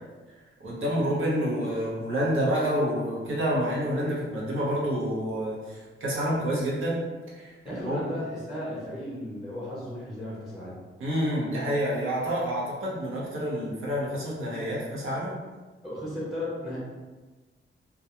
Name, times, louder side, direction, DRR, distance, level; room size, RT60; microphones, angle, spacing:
voice 1, 0.6-7.0 7.3-8.0 11.0-15.3, equal, 75° right, -5 dB, 0.8 m, -28 dB
voice 2, 7.6-10.8 15.8-16.8, left 1 dB, ahead, -7 dB, 0.6 m, -35 dB
2.3 x 2.2 x 2.8 m, 1.3 s
wide cardioid pair, 160°, 21 cm